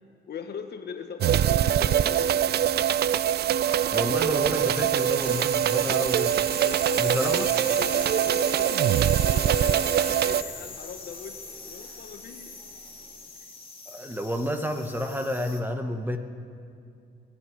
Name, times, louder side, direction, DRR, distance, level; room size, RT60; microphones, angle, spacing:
voice 1, 0.3-2.4 2.7-3.2 5.9-6.1 6.6-11.4 11.6-12.5, left 6 dB, 55° left, 6 dB, 1.3 m, -40 dB
sound 1, 1.2-10.4, right 10 dB, 55° right, 0.4 m, -23 dB
sound 2, 1.5-13.2, right 2 dB, 40° right, 3.7 m, -53 dB
sound 3, 3.6-15.6, left 3 dB, 30° left, 2.0 m, -41 dB
voice 2, 3.9-6.3 7.0-7.5 13.9-16.2, equal, 10° right, 6 dB, 1.1 m, -30 dB
20.5 x 7.1 x 9.3 m, 2.4 s
cardioid pair, 90°, 20 cm